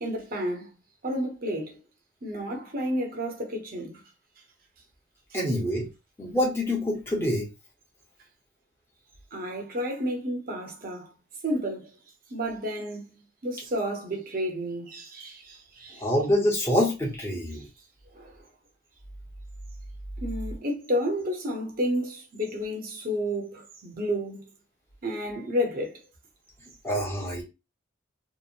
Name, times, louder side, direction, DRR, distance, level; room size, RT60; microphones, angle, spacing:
voice 1, 0.0-0.7 1.0-1.8 2.2-4.0 9.3-11.1 11.4-11.9 12.3-13.1 13.4-16.1 17.5-17.6 18.1-18.3 20.2-24.5 25.0-26.0, equal, 45° right, 0.8 m, -31 dB
voice 2, 5.3-5.9 6.2-7.5 15.9-17.6 26.8-27.4, left 1 dB, 15° left, 0.8 m, -26 dB
2.9 x 2.0 x 2.5 m
head